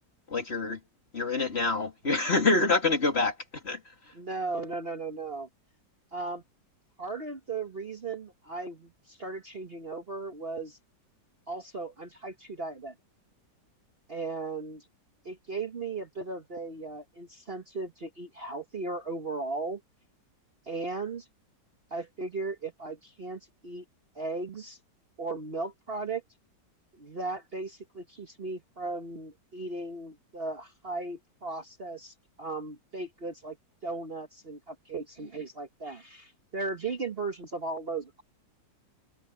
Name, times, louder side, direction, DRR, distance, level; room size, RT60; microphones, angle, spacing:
voice 1, 0.3-0.8 1.1-3.8, left 3 dB, 35° left, 2.4 m, -26 dB
voice 2, 4.1-5.5 6.1-6.4 7.0-10.8 11.5-12.9 14.1-14.9 15.2-19.8 20.7-21.3 21.9-23.8 24.1-24.8 25.2-26.2 26.9-33.6 33.8-38.2, right 3 dB, 35° right, 1.4 m, -36 dB
omnidirectional pair, 2.0 m